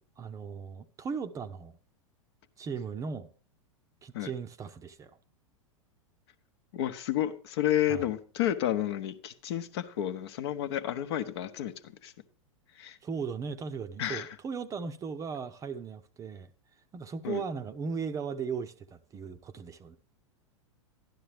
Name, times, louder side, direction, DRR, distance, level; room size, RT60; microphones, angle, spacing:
voice 1, 0.2-1.7 2.6-3.3 4.0-5.1 7.9-8.0 13.0-16.5 16.9-20.0, right 5 dB, 20° right, 0.6 m, -37 dB
voice 2, 6.7-12.1 12.8-13.0 14.0-14.3 17.2-17.4, left 11 dB, 50° left, 0.9 m, -31 dB
12.0 x 11.0 x 3.3 m
figure-of-eight pair, 95°, 17 cm